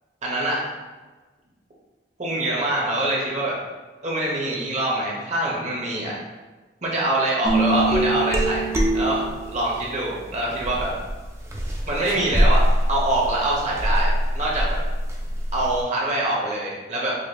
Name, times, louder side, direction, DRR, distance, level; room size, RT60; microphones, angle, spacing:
voice 1, 0.2-0.6 2.2-3.5 4.0-6.1 6.8-8.7 8.9-10.9 11.9-12.6 12.9-14.8 15.5-17.1, right 1 dB, 45° right, -3 dB, 0.9 m, -24 dB
sound 1, 7.4-9.8 10.6-15.8, right 1 dB, 15° right, 0.5 m, -23 dB
5.0 x 2.8 x 2.2 m, 1.3 s
head